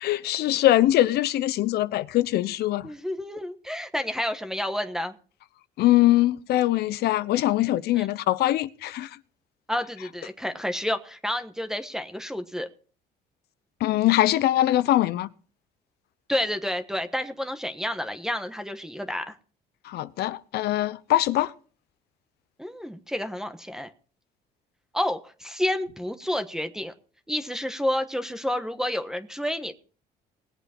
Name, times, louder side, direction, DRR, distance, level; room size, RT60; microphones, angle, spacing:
voice 1, 0.0-2.9 5.8-9.1 13.8-15.3 19.8-21.5, left 14 dB, 70° left, 0.8 m, -22 dB
voice 2, 2.8-5.1 8.0-8.1 9.7-12.7 16.3-19.4 22.6-23.9 24.9-26.9 27.3-29.7, left 1 dB, 5° right, 1.2 m, -30 dB
20.0 x 8.0 x 4.4 m
cardioid pair, 110°, 17 cm